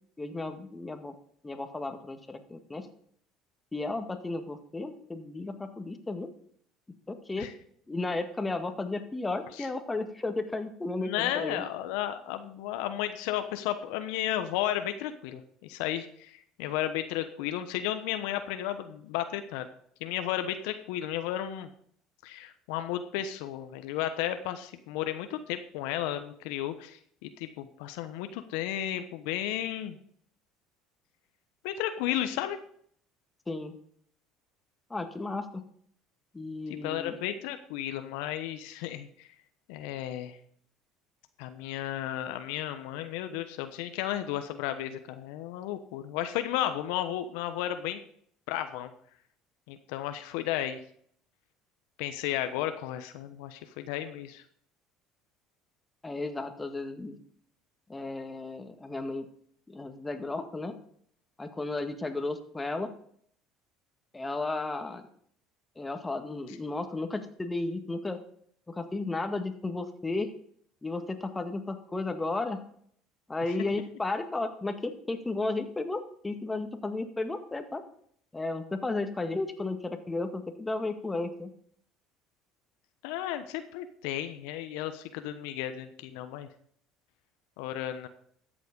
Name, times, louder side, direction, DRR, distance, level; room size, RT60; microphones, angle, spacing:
voice 1, 0.2-1.1 1.4-2.9 3.7-6.3 7.1-7.5 7.9-11.7 33.5-33.7 34.9-35.7 36.3-37.2 56.0-57.2 57.9-59.3 59.7-60.8 61.4-62.9 64.1-65.1 65.8-68.2 68.7-70.3 70.8-72.6 73.3-77.8 78.3-81.5, left 2 dB, 15° left, 6 dB, 1.8 m, -34 dB
voice 2, 11.0-19.7 20.0-21.7 22.2-30.0 31.6-32.6 36.8-39.3 39.7-40.4 41.4-48.0 48.5-48.9 49.7-50.8 52.0-54.4 83.0-86.5 87.6-88.1, left 12 dB, 80° left, 9 dB, 1.0 m, -33 dB
13.0 x 7.5 x 5.4 m, 0.63 s
supercardioid pair, 80°, 0 cm